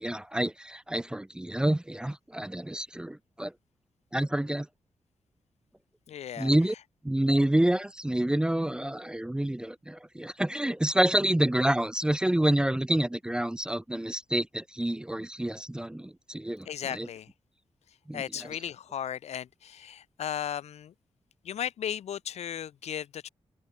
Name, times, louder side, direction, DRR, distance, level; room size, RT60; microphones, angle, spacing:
voice 1, 0.0-3.5 4.1-4.7 6.4-6.7 7.0-17.1 18.1-18.5, right 1 dB, 10° right, 0.5 m, -28 dB
voice 2, 6.1-6.5 16.7-17.3 18.1-20.9 21.4-23.3, left 9 dB, 90° left, 1.9 m, -36 dB
open air
wide cardioid pair, 120°, 11 cm